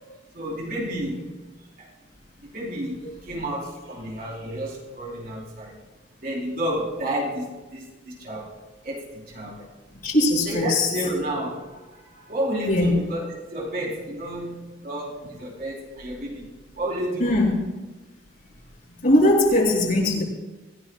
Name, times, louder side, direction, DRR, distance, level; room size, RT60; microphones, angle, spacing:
voice 1, 0.3-1.5 1.8-1.9 2.4-5.8 6.2-9.7 10.4-17.3, equal, 50° right, -3 dB, 4.2 m, -31 dB
voice 2, 10.0-10.9 12.7-12.9 17.2-17.6 19.0-20.2, left 1 dB, 50° left, -3 dB, 6.6 m, -20 dB
26.0 x 16.5 x 2.5 m, 1.1 s
head